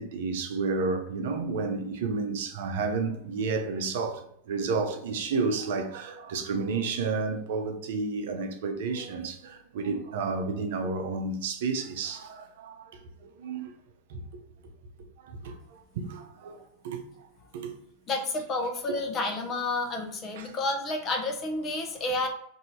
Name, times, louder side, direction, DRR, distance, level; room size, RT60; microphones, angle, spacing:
voice 1, 0.0-13.7 14.1-14.4 15.0-17.0 17.5-17.7 18.9-19.0 20.3-20.6, right 4 dB, 65° right, 0.6 m, -31 dB
voice 2, 18.1-22.3, left 2 dB, 35° left, 0.7 m, -30 dB
2.7 x 2.7 x 4.2 m
hypercardioid pair, 95°, 0 cm